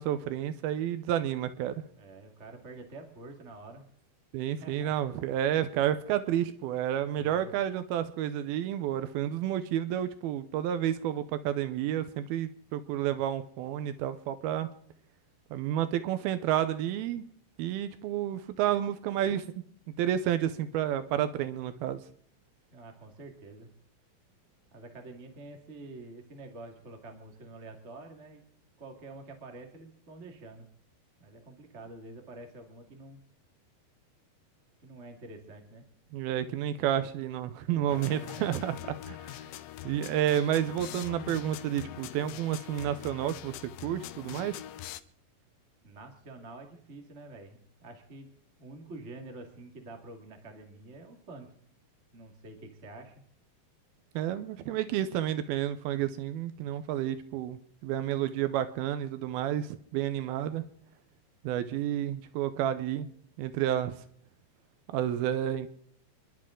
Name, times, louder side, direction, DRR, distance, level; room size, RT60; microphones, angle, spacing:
voice 1, 0.0-1.7 4.3-14.7 15.5-17.3 17.6-19.5 20.0-22.0 36.1-39.2 39.8-44.6 54.2-60.6 61.4-63.1 63.4-64.0 64.9-65.7, right 11 dB, 85° right, 11 dB, 2.6 m, -30 dB
voice 2, 2.0-3.9 4.6-4.9 7.2-7.5 22.7-23.7 24.7-28.4 28.8-30.7 31.2-33.2 34.8-35.8 37.6-38.5 45.8-48.3 48.6-51.5 52.1-53.1, right 2 dB, 30° right, 4 dB, 1.5 m, -47 dB
sound 1, 37.9-45.0, left 13 dB, 80° left, 2.4 m, -43 dB
27.5 x 12.0 x 3.8 m, 0.63 s
omnidirectional pair, 4.3 m